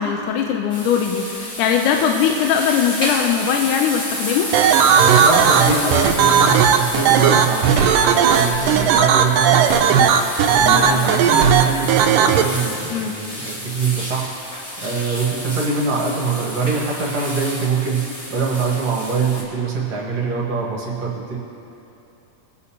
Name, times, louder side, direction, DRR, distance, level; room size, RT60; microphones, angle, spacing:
voice 1, 0.0-4.5 10.6-11.1 12.9-13.2, left 7 dB, 80° left, 3 dB, 2.0 m, -20 dB
sound 1, 0.7-19.4, equal, 30° left, 2.2 m, -30 dB
sound 2, 4.5-12.4, right 7 dB, 85° right, 2.3 m, -15 dB
voice 2, 4.9-21.4, right 5 dB, 55° right, -4 dB, 2.3 m, -23 dB
22.0 x 8.1 x 2.9 m, 2.9 s
omnidirectional pair, 3.9 m